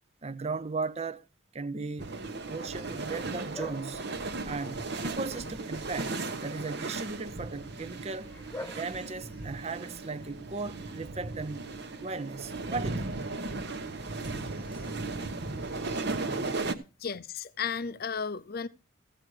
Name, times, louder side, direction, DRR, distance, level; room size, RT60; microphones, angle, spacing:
voice 1, 0.2-1.3 1.5-2.2 2.5-4.0 4.4-11.7 12.0-13.2 15.5-16.5, right 3 dB, 30° right, 0.6 m, -37 dB
sound 1, 2.0-16.7, right 3 dB, 55° right, 0.9 m, -36 dB
Bark, 2.4-16.8, left 1 dB, 10° left, 1.2 m, -50 dB
voice 2, 17.0-18.7, left 6 dB, 50° left, 0.5 m, -34 dB
15.0 x 7.6 x 4.7 m
head